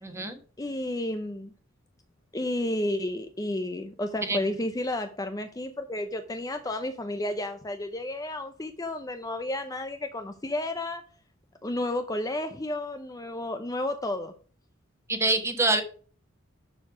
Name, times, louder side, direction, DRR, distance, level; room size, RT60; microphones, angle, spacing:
voice 1, 0.0-0.4 4.2-4.4 15.1-15.8, right 2 dB, 15° right, 7 dB, 1.2 m, -25 dB
voice 2, 0.6-1.5 2.3-11.0 11.6-14.3, left 1 dB, 15° left, 7 dB, 0.6 m, -32 dB
11.5 x 4.6 x 4.8 m, 0.42 s
head